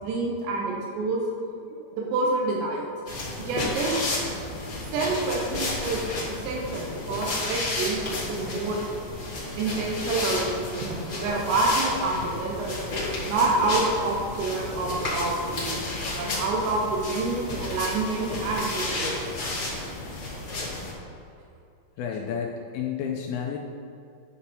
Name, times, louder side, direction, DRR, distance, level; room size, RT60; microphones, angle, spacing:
voice 1, 0.0-1.2 1.9-2.9 3.4-4.0 4.9-6.0 6.3-8.8 9.5-12.8 13.2-15.7 16.1-19.2, right 3 dB, 85° right, -2 dB, 3.3 m, -27 dB
sound 1, 3.1-20.9, left 2 dB, 25° left, 1.0 m, -32 dB
voice 2, 22.0-23.6, left 7 dB, 85° left, 0 dB, 2.2 m, -31 dB
9.9 x 7.0 x 4.3 m, 2.6 s
omnidirectional pair, 4.9 m